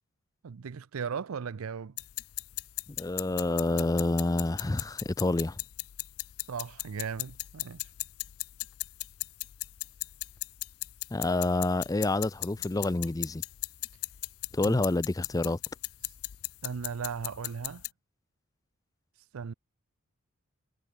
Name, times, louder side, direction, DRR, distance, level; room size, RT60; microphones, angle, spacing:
voice 1, 0.4-1.9 6.5-7.8 14.6-14.8 16.6-17.8 19.3-19.5, right 6 dB, 80° right, 0.5 m, -37 dB
sound 1, 2.0-17.9, left 20 dB, 80° left, 0.5 m, -38 dB
voice 2, 3.0-5.6 11.1-13.4 14.5-15.6, left 2 dB, 15° left, 0.4 m, -28 dB
head